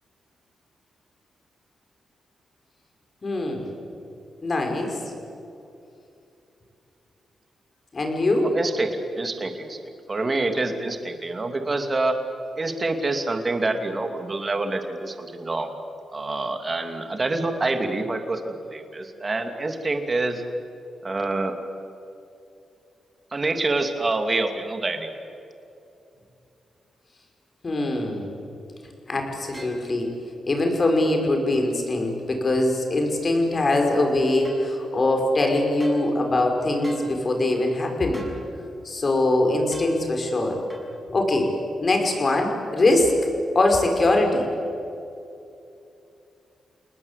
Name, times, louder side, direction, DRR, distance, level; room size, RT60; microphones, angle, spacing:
voice 1, 3.2-3.7 4.4-5.0 7.9-8.5 27.6-28.3 29.1-30.1 30.5-38.2 38.8-40.6 41.1-41.5 41.8-43.1 43.6-44.5, left 2 dB, 40° left, 3 dB, 5.3 m, -22 dB
voice 2, 8.4-9.8 10.1-12.2 12.6-15.7 16.1-20.4 21.0-21.5 23.3-25.1, right 2 dB, 30° right, 6 dB, 2.6 m, -26 dB
sound 1, 29.5-29.8 34.4-34.6 35.8-36.0 36.8-37.1 38.1-38.4 39.7-39.9 40.7-40.9, right 1 dB, 10° right, 6.2 m, -43 dB
29.5 x 19.5 x 8.3 m, 2.7 s
cardioid pair, 90°, 0 cm